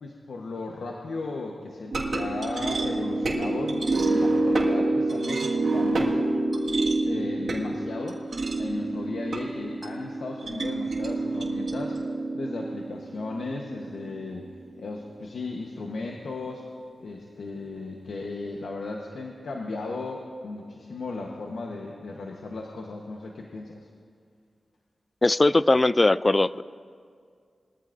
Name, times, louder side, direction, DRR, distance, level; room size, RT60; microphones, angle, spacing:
voice 1, 0.0-6.2 7.1-8.2 8.6-12.0 12.3-14.5 14.8-16.6 17.0-23.8, left 3 dB, 85° left, 0 dB, 1.1 m, -35 dB
sound 1, 1.9-14.3, right 2 dB, 65° right, 1.7 m, -27 dB
voice 2, 25.2-26.6, left 2 dB, 35° left, 17 dB, 0.3 m, -20 dB
22.0 x 14.0 x 2.6 m, 2.2 s
cardioid pair, 55°, 0 cm